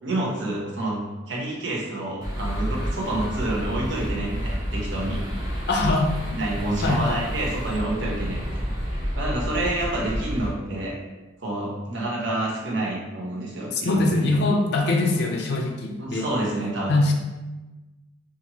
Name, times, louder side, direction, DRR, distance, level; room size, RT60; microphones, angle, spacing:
voice 1, 0.0-1.0 1.3-5.2 6.4-11.0 11.4-14.4 16.0-17.0, right 1 dB, 75° right, -3 dB, 0.7 m, -28 dB
sound 1, 2.2-10.5, equal, 25° right, 1.3 m, -30 dB
voice 2, 5.7-6.1 6.8-7.2 13.7-16.3 16.9-17.1, left 2 dB, 60° left, 2 dB, 0.5 m, -22 dB
2.8 x 2.5 x 2.8 m, 1.1 s
head